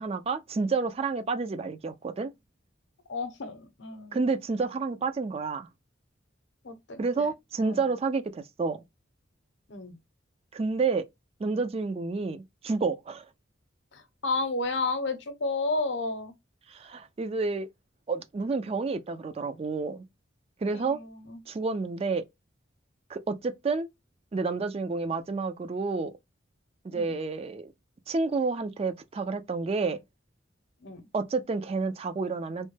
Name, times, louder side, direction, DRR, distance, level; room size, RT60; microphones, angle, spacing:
voice 1, 0.0-2.3 4.1-5.7 7.0-8.8 10.5-11.1 11.4-13.3 16.7-17.7 18.1-20.0 20.6-21.0 21.5-22.2 23.1-23.9 24.3-26.1 26.8-27.7 28.1-30.0 31.1-32.7, right 4 dB, 30° right, 0.3 m, -29 dB
voice 2, 3.1-4.2 6.6-7.3 7.6-7.8 9.7-10.0 13.9-16.3 20.7-21.4 26.9-27.2 30.8-31.0, left 3 dB, 65° left, 0.7 m, -32 dB
3.1 x 2.1 x 3.1 m
head